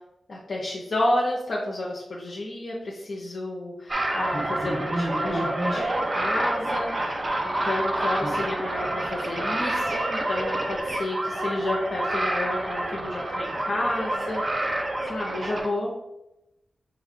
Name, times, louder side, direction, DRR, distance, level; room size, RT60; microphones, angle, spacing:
voice 1, 0.3-14.7 15.1-15.9, left 1 dB, 55° left, -4 dB, 0.8 m, -31 dB
sound 1, 3.9-15.7, right 1 dB, 30° right, 0.5 m, -28 dB
5.9 x 2.3 x 3.6 m, 0.90 s
wide cardioid pair, 110°, 0 cm